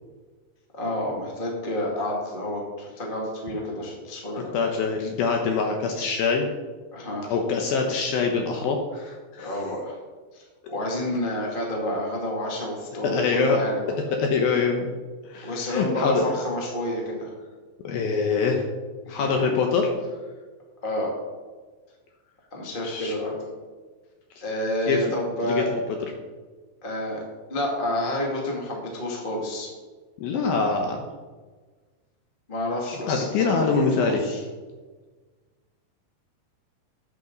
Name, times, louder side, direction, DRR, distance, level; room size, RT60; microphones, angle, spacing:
voice 1, 0.7-4.6 6.9-7.3 9.4-9.9 10.3-13.9 15.4-17.3 19.0-19.5 20.8-21.1 22.5-23.3 24.4-25.7 26.8-27.2 27.5-29.7 32.5-34.4, left 1 dB, 30° left, -2 dB, 1.0 m, -29 dB
voice 2, 4.4-6.5 7.3-9.5 13.1-13.6 14.2-14.9 15.3-16.2 17.8-18.6 19.1-19.9 22.8-23.1 24.9-25.0 25.4-25.6 30.2-31.1 33.1-34.2, left 5 dB, 75° left, 3 dB, 2.4 m, -24 dB
13.0 x 8.5 x 3.9 m, 1.4 s
omnidirectional pair, 5.1 m